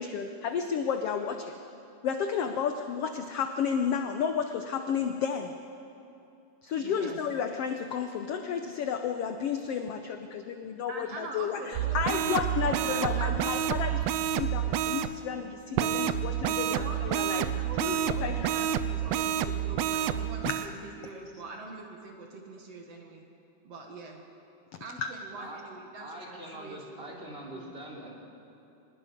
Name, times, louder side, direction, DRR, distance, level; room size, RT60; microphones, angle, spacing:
voice 1, 0.0-1.5 2.0-5.5 6.6-17.5 17.8-18.5 20.5-20.6 25.0-25.1, left 7 dB, 75° left, 6 dB, 1.4 m, -32 dB
voice 2, 6.8-7.2 10.9-13.6 16.6-17.0 17.3-23.2 23.6-24.2 24.8-27.7, right 3 dB, 55° right, 2 dB, 2.4 m, -43 dB
sound 1, 11.7-15.1 15.8-20.7, right 10 dB, 80° right, 1.5 m, -29 dB
voice 3, 26.0-28.1, right 1 dB, 20° right, -3 dB, 3.2 m, -43 dB
24.0 x 20.5 x 5.2 m, 2.7 s
omnidirectional pair, 3.6 m